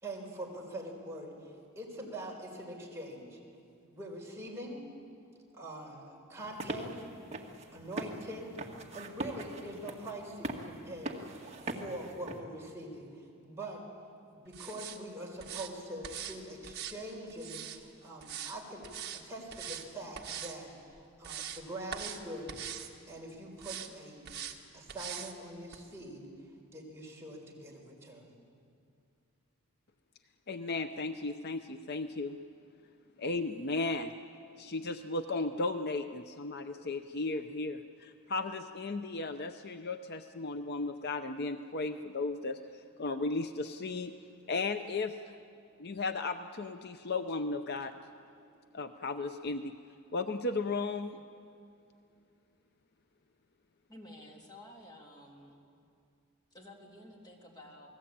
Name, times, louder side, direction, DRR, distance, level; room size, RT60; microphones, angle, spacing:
voice 1, 0.0-3.4 3.8-4.8 5.5-7.0 7.7-8.6 8.9-11.2 11.7-13.8 14.3-18.9 19.2-22.6 23.1-24.3 24.7-26.3 26.7-28.3, right 1 dB, 10° right, -2 dB, 4.6 m, -44 dB
sound 1, 6.4-12.4, right 1 dB, 30° right, 1.9 m, -42 dB
sound 2, 14.5-15.0 15.4-15.7 16.0-16.4 16.6-17.8 18.2-18.6 18.8-19.2 19.5-19.9 20.1-20.5 21.0-21.6 21.9-22.2 22.5-22.9 23.6-23.9 24.2-24.6 24.9-25.3 25.7-25.8, right 9 dB, 45° right, 1.7 m, -42 dB
voice 2, 30.5-32.4 33.2-34.1 34.6-44.1 44.5-45.2 45.8-47.9 48.7-49.7 50.1-51.2, left 3 dB, 45° left, 8 dB, 0.7 m, -35 dB
voice 3, 53.9-55.6 56.5-57.9, left 1 dB, 20° left, -1 dB, 3.0 m, -52 dB
28.5 x 19.5 x 8.8 m, 2.5 s
head